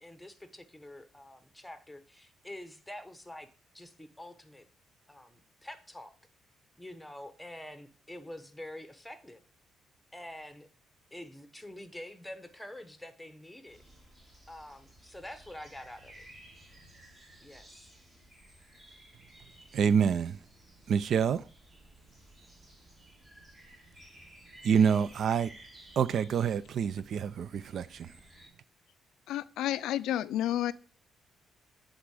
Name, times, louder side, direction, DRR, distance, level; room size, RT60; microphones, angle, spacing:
voice 1, 0.0-3.5 3.7-4.7 5.1-6.1 6.8-9.4 10.1-10.7 11.1-13.8 14.5-16.3 17.4-17.9, left 1 dB, 5° left, 1.0 m, -46 dB
sound 1, 13.7-28.5, right 1 dB, 30° right, 2.3 m, -56 dB
voice 2, 19.7-20.4 20.9-21.5 24.6-25.5 26.0-28.1, right 7 dB, 60° right, 0.4 m, -27 dB
voice 3, 29.3-30.7, left 12 dB, 85° left, 0.3 m, -30 dB
8.1 x 3.7 x 4.8 m
cardioid pair, 90°, 0 cm